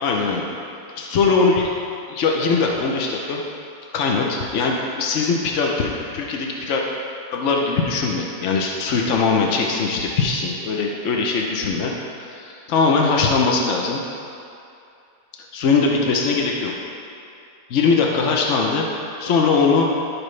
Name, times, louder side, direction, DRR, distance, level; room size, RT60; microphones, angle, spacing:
voice 1, 0.0-0.4 1.0-1.6 2.1-3.4 3.9-6.8 7.3-11.9 12.3-14.0 15.5-16.7 17.7-18.9 19.2-19.9, left 4 dB, 70° left, -1 dB, 0.7 m, -20 dB
14.5 x 4.8 x 3.2 m, 2.6 s
omnidirectional pair, 2.2 m